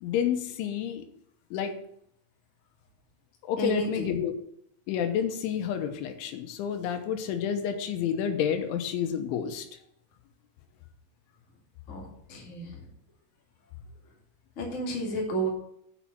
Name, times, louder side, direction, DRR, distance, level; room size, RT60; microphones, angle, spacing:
voice 1, 0.0-1.0 1.5-1.7 3.5-4.3 4.9-9.7, left 8 dB, 85° left, 6 dB, 3.5 m, -29 dB
voice 2, 3.6-4.1 11.9-12.8 14.5-15.5, right 2 dB, 35° left, -1 dB, 1.3 m, -32 dB
7.1 x 6.6 x 7.4 m, 0.70 s
omnidirectional pair, 5.4 m